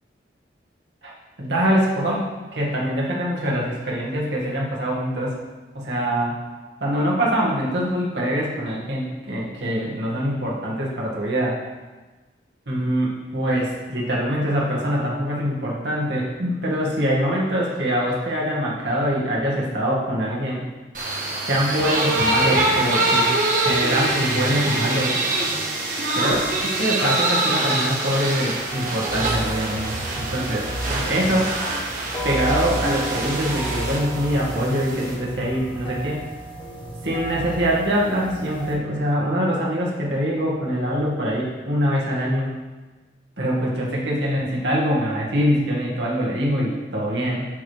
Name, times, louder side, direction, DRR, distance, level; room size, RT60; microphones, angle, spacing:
voice 1, 1.4-5.3 5.7-6.4 6.8-11.6 12.7-20.6 21.5-23.3 23.6-25.2 26.1-30.7 31.1-31.5 32.2-36.2 37.0-42.5 43.4-47.5, equal, 80° right, -4 dB, 1.9 m, -24 dB
sound 1, 20.9-35.1, right 2 dB, 45° right, 1.4 m, -24 dB
sound 2, 28.5-38.8, right 1 dB, 25° left, 1.0 m, -32 dB
11.5 x 4.8 x 3.3 m, 1.2 s
head